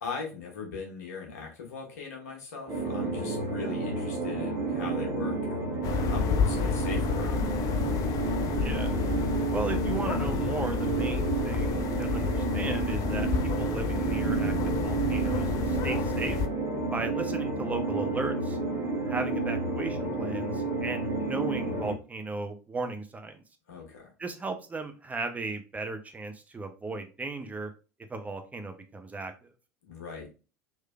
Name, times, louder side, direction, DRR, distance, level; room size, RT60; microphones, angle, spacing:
voice 1, 0.0-7.5 23.7-24.0 29.9-30.3, left 5 dB, 70° left, 0 dB, 1.2 m, -39 dB
sound 1, 2.7-21.9, right 3 dB, 35° right, 1.3 m, -30 dB
sound 2, 5.8-16.5, left 7 dB, 40° left, 0.4 m, -30 dB
voice 2, 9.5-13.3 13.6-16.4 16.9-18.6 19.1-23.4 24.2-27.7 28.1-29.5, right 3 dB, 15° right, 6 dB, 0.5 m, -36 dB
3.3 x 3.1 x 2.3 m, 0.32 s
figure-of-eight pair, 75°, 9 cm